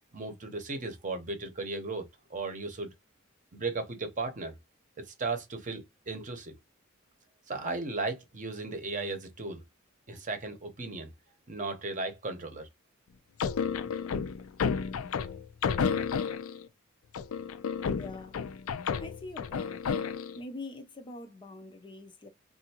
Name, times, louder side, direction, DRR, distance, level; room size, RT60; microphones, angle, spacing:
voice 1, 0.1-2.9 3.5-4.6 5.2-6.5 7.5-9.6 10.1-11.1 11.5-12.7, right 3 dB, 40° right, 0.8 m, -36 dB
sound 1, 13.4-16.7 17.1-20.4, left 6 dB, 80° left, 0.4 m, -31 dB
voice 2, 17.9-18.4 19.0-19.8 20.3-22.3, left 2 dB, 25° left, 0.5 m, -44 dB
3.4 x 2.5 x 2.8 m
head